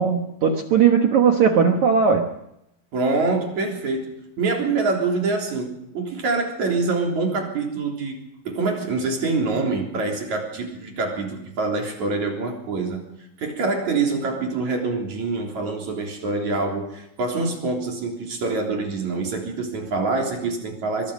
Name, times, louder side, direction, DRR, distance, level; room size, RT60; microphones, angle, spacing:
voice 1, 0.0-2.3, right 6 dB, 75° right, 4 dB, 1.7 m, -18 dB
voice 2, 2.9-8.2 8.4-13.0 13.4-21.1, right 3 dB, 40° right, 1 dB, 4.5 m, -25 dB
24.5 x 24.0 x 5.2 m, 0.82 s
omnidirectional pair, 5.4 m